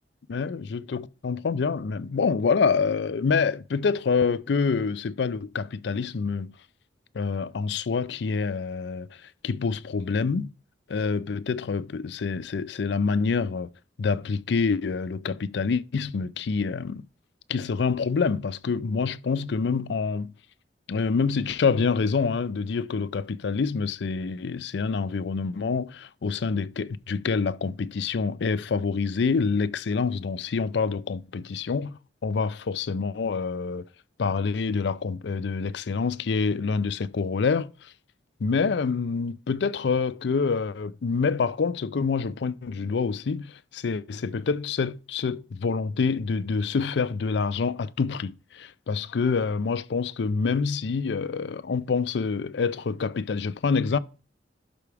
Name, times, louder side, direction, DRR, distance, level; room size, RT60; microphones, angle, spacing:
voice 1, 0.3-6.5 7.1-9.1 9.4-10.5 10.9-13.7 14.0-17.0 17.5-20.3 20.9-31.9 32.2-33.8 34.2-37.9 38.4-54.0, left 5 dB, 65° left, 0.4 m, -26 dB
11.5 x 4.8 x 3.4 m
head